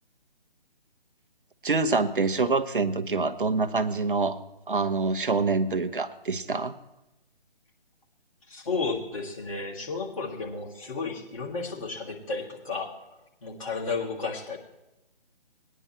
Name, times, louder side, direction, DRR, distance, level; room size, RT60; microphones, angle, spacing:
voice 1, 1.6-4.4 4.7-6.7, right 4 dB, 60° right, 10 dB, 0.8 m, -26 dB
voice 2, 8.5-13.1 13.4-14.6, left 4 dB, 35° left, -3 dB, 2.0 m, -33 dB
19.0 x 10.0 x 3.1 m, 0.93 s
figure-of-eight pair, 145°, 30 cm